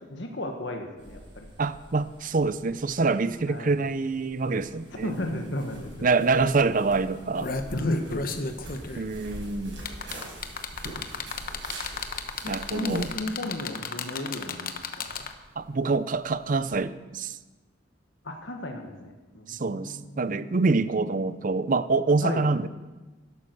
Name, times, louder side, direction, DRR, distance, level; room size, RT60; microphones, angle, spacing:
voice 1, 0.1-1.5 3.5-3.8 5.0-6.1 7.7-8.3 12.4-15.3 18.2-20.6 22.2-22.5, left 1 dB, 65° left, 3 dB, 1.4 m, -34 dB
sound 1, 1.0-13.1, right 1 dB, 75° right, 5.3 m, -45 dB
voice 2, 1.6-5.1 6.0-7.5 9.0-9.8 12.5-13.1 15.6-17.4 19.5-22.7, right 3 dB, 45° right, 15 dB, 0.5 m, -26 dB
sound 2, 5.9-6.0 6.3-6.5 7.1-15.5 16.7-16.8, left 4 dB, 50° left, 1.0 m, -34 dB
12.0 x 11.5 x 6.5 m, 1.2 s
head